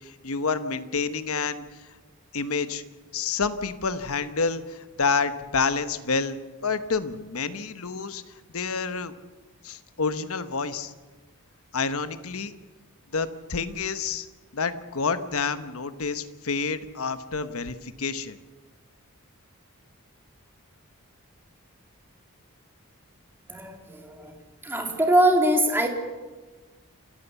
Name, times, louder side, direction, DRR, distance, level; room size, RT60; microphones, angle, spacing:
voice 1, 0.0-1.8 2.3-2.8 3.1-6.4 6.6-8.2 8.5-9.1 9.6-10.9 11.7-12.5 13.1-14.3 14.5-18.4, left 4 dB, 75° left, 11 dB, 1.1 m, -28 dB
voice 2, 23.5-24.3 24.6-25.9, right 1 dB, 10° right, 3 dB, 2.3 m, -22 dB
28.5 x 14.0 x 7.1 m, 1.3 s
head